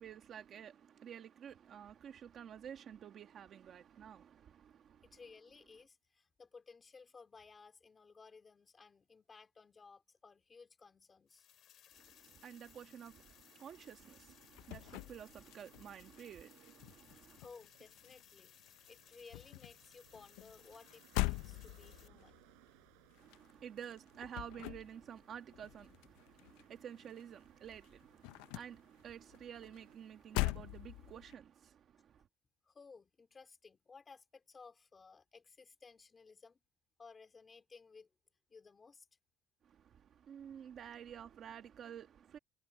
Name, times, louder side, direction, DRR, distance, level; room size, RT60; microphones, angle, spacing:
voice 1, 0.0-5.2 11.9-17.4 23.2-32.3 39.6-42.4, right 9 dB, 35° right, 1.3 m, -51 dB
voice 2, 5.0-11.4 17.1-22.4 32.2-32.3 32.7-36.6 37.0-38.1 38.5-39.1, left 4 dB, 15° left, 3.7 m, -58 dB
sound 1, 11.3-22.1, left 11 dB, 40° left, 2.6 m, -64 dB
sound 2, 12.2-30.0, right 28 dB, 80° right, 5.4 m, -69 dB
sound 3, 14.2-16.2 16.5-18.4 18.7-27.4 27.6-31.3, left 21 dB, 80° left, 0.4 m, -43 dB
cardioid pair, 170°, 0 cm